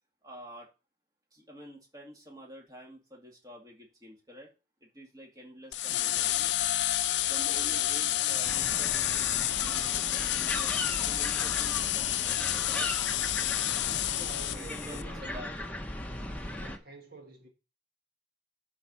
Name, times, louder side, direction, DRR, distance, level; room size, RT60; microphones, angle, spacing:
voice 1, 0.2-0.7 1.3-4.5 4.8-6.5 7.2-12.3 12.6-12.9 14.5-15.6, equal, 20° right, 2.3 m, -48 dB
sound 1, 5.7-15.0, left 13 dB, 80° left, 0.5 m, -29 dB
voice 2, 7.4-8.5 14.1-15.6 16.6-17.5, right 2 dB, 55° right, 1.6 m, -49 dB
sound 2, 8.4-16.8, left 1 dB, 10° left, 1.0 m, -38 dB
10.5 x 4.5 x 5.6 m
head